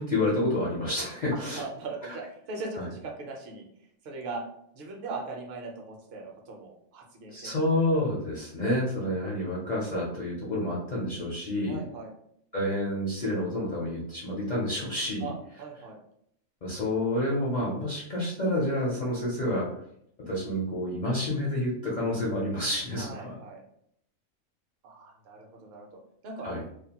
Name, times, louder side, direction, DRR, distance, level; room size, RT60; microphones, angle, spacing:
voice 1, 0.0-1.6 2.8-2.9 7.3-11.8 12.5-15.3 16.6-19.7 20.2-23.3 26.4-26.6, left 1 dB, 55° left, -6 dB, 0.5 m, -29 dB
voice 2, 1.3-4.4 4.7-7.5 11.7-12.1 15.2-16.0 23.0-23.6 24.8-26.5, right 3 dB, 55° right, 0 dB, 0.7 m, -40 dB
2.5 x 2.3 x 2.8 m, 0.71 s
omnidirectional pair, 1.5 m